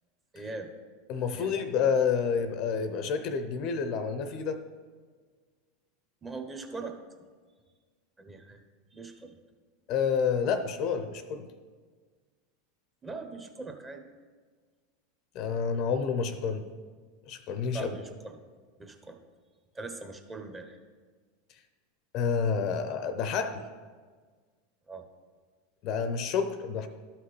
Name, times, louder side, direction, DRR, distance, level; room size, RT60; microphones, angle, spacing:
voice 1, 0.3-0.7 1.3-1.6 6.2-6.9 8.2-8.6 8.9-9.4 13.0-14.0 17.7-18.1 18.8-19.2 19.7-20.8 24.9-25.0, right 3 dB, 20° right, 4 dB, 1.0 m, -41 dB
voice 2, 1.1-4.6 9.9-11.5 15.3-16.7 17.3-18.0 22.1-23.6 25.8-26.9, left 6 dB, 55° left, 10 dB, 0.6 m, -29 dB
12.5 x 5.8 x 3.2 m, 1.5 s
hypercardioid pair, 100°, 0 cm